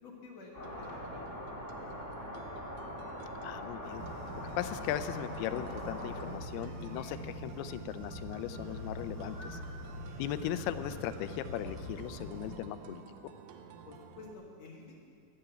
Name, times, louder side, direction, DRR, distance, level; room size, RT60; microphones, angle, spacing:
voice 1, 0.0-2.4 13.8-15.0, left 3 dB, 55° left, -1 dB, 2.1 m, -52 dB
sound 1, 0.5-6.3, left 1 dB, 25° left, 1.8 m, -42 dB
sound 2, 0.6-14.3, right 7 dB, 80° right, 2.6 m, -52 dB
voice 2, 3.4-4.0 4.6-9.6 10.2-13.3, left 11 dB, 85° left, 12 dB, 2.6 m, -38 dB
sound 3, 3.8-12.5, equal, 40° right, 3.5 m, -44 dB
14.5 x 9.6 x 6.9 m, 2.4 s
omnidirectional pair, 4.5 m